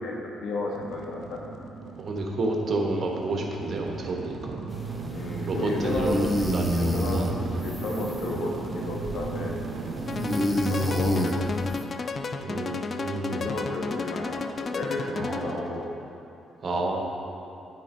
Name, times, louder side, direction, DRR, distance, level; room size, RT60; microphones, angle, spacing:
voice 1, 0.0-1.4 5.1-6.4 6.7-7.2 7.6-9.6 10.5-11.4 13.3-15.9, left 2 dB, 75° left, -1 dB, 1.1 m, -33 dB
sound 1, 0.7-11.7, right 4 dB, 75° right, 0.5 m, -37 dB
voice 2, 2.0-4.6 5.5-7.3 8.2-8.3 9.4-9.5 12.4-13.5 15.1-15.7 16.6-17.0, right 2 dB, 45° right, 0 dB, 1.0 m, -30 dB
sound 2, 4.7-11.8, equal, 5° left, 0.7 m, -29 dB
sound 3, 10.1-15.7, left 4 dB, 40° left, 0.3 m, -33 dB
9.1 x 4.1 x 4.2 m, 2.7 s
cardioid pair, 90°, 0 cm